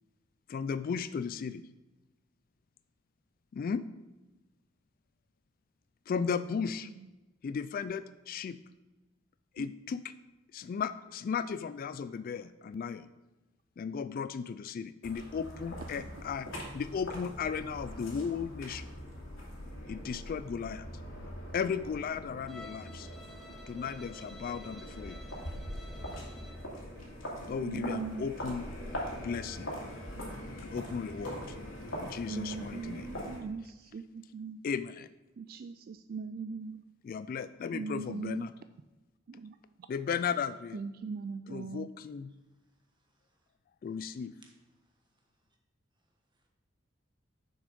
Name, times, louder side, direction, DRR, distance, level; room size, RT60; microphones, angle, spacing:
voice 1, 0.5-1.6 3.5-3.8 6.1-6.9 7.4-8.6 9.5-10.1 10.5-13.1 13.8-16.5 16.7-18.9 19.9-20.9 21.5-23.1 23.7-25.2 27.5-28.6 29.2-29.7 30.6-31.5 32.0-33.1 34.6-35.1 37.0-38.5 39.9-40.8 41.5-42.3 43.8-44.4, left 6 dB, 45° left, 13 dB, 0.3 m, -35 dB
sound 1, 15.0-33.4, equal, 80° left, 2.4 m, -42 dB
Bowed string instrument, 22.5-26.7, left 2 dB, ahead, 1.0 m, -53 dB
sound 2, 22.9-30.3, equal, 20° left, 2.3 m, -55 dB
voice 2, 27.6-28.3 32.3-34.6 35.4-36.8 37.7-38.5 39.3-39.9 40.7-41.9, right 5 dB, 50° right, 11 dB, 0.3 m, -40 dB
voice 3, 42.8-43.5 44.4-45.6 46.3-46.5, right 3 dB, 25° right, 1 dB, 1.4 m, -69 dB
6.8 x 6.3 x 5.2 m, 1.1 s
head